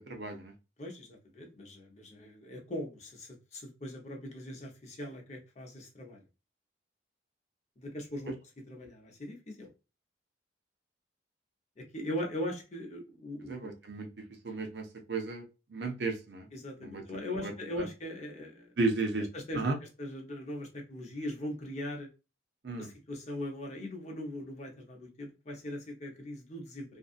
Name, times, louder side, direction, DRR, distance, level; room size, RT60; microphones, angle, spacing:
voice 1, 0.1-0.5 13.5-14.1 14.4-15.4 15.7-16.5 16.8-17.0 17.4-17.5 17.8-17.9 18.8-19.3 19.5-19.8 22.6-22.9, right 3 dB, 65° right, 4 dB, 0.7 m, -33 dB
voice 2, 0.8-6.2 7.8-8.3 8.7-9.7 11.8-13.7 16.5-18.7 19.3-22.1 22.8-27.0, left 1 dB, 40° left, 1 dB, 0.8 m, -40 dB
2.6 x 2.4 x 2.4 m, 0.29 s
head